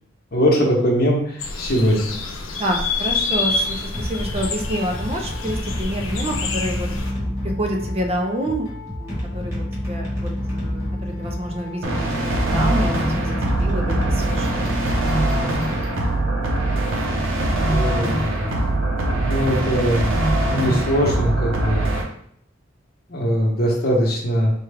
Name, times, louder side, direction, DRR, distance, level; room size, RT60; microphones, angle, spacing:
voice 1, 0.3-2.1 17.6-18.7 19.1-20.0 20.5-21.9 23.1-24.5, equal, 50° left, -1 dB, 0.9 m, -21 dB
sound 1, 1.4-7.1, left 3 dB, 85° left, 0.6 m, -27 dB
voice 2, 2.6-6.9 7.4-8.7 9.0-14.7, equal, 30° right, 2 dB, 0.5 m, -28 dB
sound 2, 3.5-16.6, left 1 dB, 15° right, 1.3 m, -29 dB
sound 3, 11.8-22.0, right 1 dB, 75° right, 0.8 m, -22 dB
4.4 x 2.3 x 3.4 m, 0.68 s
head